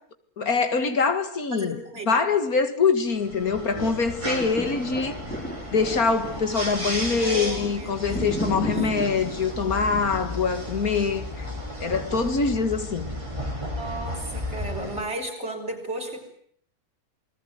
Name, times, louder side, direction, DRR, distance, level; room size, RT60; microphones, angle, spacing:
voice 1, 0.4-1.8 2.1-5.1 5.7-11.5 11.8-13.1, left 5 dB, 70° left, 2.4 m, -24 dB
voice 2, 1.6-2.1 7.2-8.9 13.8-16.2, right 1 dB, 45° right, 6.6 m, -34 dB
sound 1, 3.1-15.0, left 1 dB, 20° right, 5.8 m, -34 dB
sound 2, 4.0-12.2 12.8-12.9, equal, 5° left, 5.9 m, -36 dB
28.5 x 20.5 x 9.6 m
omnidirectional pair, 1.6 m